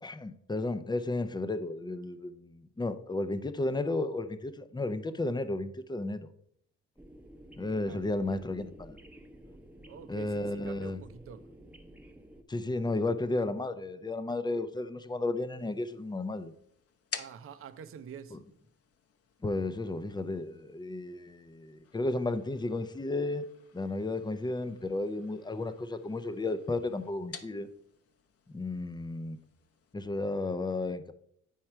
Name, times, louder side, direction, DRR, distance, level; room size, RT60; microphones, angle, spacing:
voice 1, 0.0-6.3 7.6-9.0 10.1-11.0 12.5-16.5 19.4-23.4 23.7-27.7 28.5-29.4 29.9-31.1, left 2 dB, 15° left, 0.6 m, -33 dB
sound 1, 7.0-12.4, right 1 dB, 5° right, 0.9 m, -52 dB
voice 2, 7.7-8.3 9.9-11.5 17.2-18.4, right 7 dB, 45° right, 0.6 m, -47 dB
sound 2, 15.6-29.9, left 7 dB, 50° left, 0.8 m, -51 dB
8.7 x 4.6 x 4.5 m
cardioid pair, 90°, 30 cm